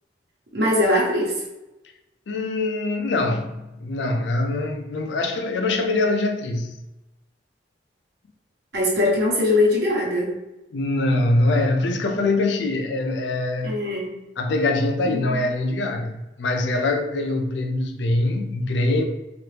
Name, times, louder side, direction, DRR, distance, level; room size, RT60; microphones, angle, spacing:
voice 1, 0.5-1.4 8.7-10.4 13.6-14.2 15.0-15.4, left 1 dB, 65° right, 0.9 m, -21 dB
voice 2, 2.3-6.8 10.7-13.8 14.4-19.0, left 2 dB, 85° left, 0.4 m, -23 dB
2.8 x 2.5 x 3.2 m
head